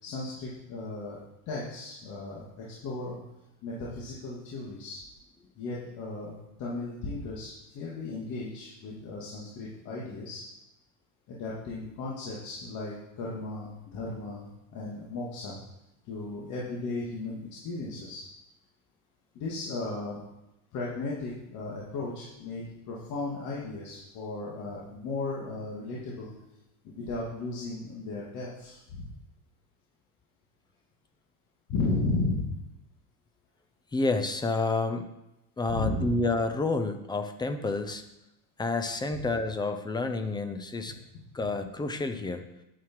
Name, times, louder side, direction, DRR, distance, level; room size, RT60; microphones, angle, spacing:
voice 1, 0.0-1.2 1.5-3.2 3.6-5.0 5.6-10.4 11.3-15.6 16.0-18.2 19.3-20.2 20.7-26.3 26.8-29.1 31.7-32.5 35.7-36.2 39.2-39.3, left 3 dB, 45° left, -5 dB, 2.7 m, -35 dB
voice 2, 33.9-35.1 35.6-38.0 38.6-41.0 41.3-42.5, left 3 dB, 10° left, 8 dB, 0.6 m, -29 dB
10.0 x 9.5 x 4.8 m, 0.91 s
supercardioid pair, 150°, 43 cm